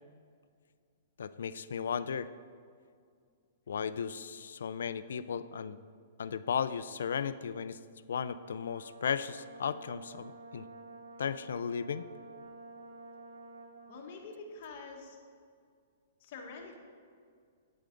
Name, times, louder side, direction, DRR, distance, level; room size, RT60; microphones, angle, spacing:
voice 1, 1.2-2.3 3.7-5.8 6.2-7.8 8.1-10.6 11.2-12.1, left 7 dB, 85° left, 14 dB, 0.4 m, -35 dB
Brass instrument, 8.2-14.1, right 2 dB, 80° right, 2.5 m, -50 dB
voice 2, 13.9-15.2 16.2-16.8, left 4 dB, 45° left, 1 dB, 1.5 m, -46 dB
8.7 x 8.5 x 3.8 m, 2.2 s
hypercardioid pair, 160°, 0 cm